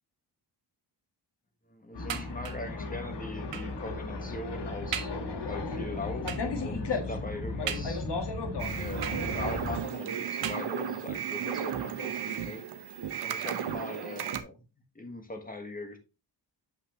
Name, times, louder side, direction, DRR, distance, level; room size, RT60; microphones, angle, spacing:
voice 1, 1.7-5.1 5.4-8.1 8.6-12.7 13.2-14.6 14.9-16.0, left 2 dB, 20° left, 5 dB, 1.4 m, -40 dB
sound 1, 1.9-9.8, left 3 dB, 70° left, 1.6 m, -35 dB
sound 2, 2.1-2.8 3.5-3.8 4.4-4.5 4.9-5.3 6.3-6.6 7.7-8.3 9.0-9.6 10.4-11.1 11.9-12.0 12.3-12.4, right 9 dB, 90° right, 1.0 m, -39 dB
sound 3, 8.6-14.4, right 8 dB, 65° right, 0.8 m, -34 dB
8.0 x 5.6 x 3.0 m, 0.29 s
wide cardioid pair, 145°, 43 cm